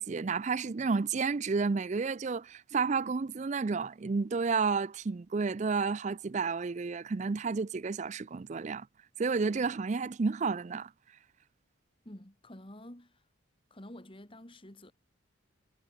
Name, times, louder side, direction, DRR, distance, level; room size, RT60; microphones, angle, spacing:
voice 1, 0.0-8.9 9.2-10.9, right 4 dB, 35° right, 0.4 m, -31 dB
voice 2, 12.0-13.2 13.7-14.9, left 1 dB, 25° left, 2.3 m, -49 dB
head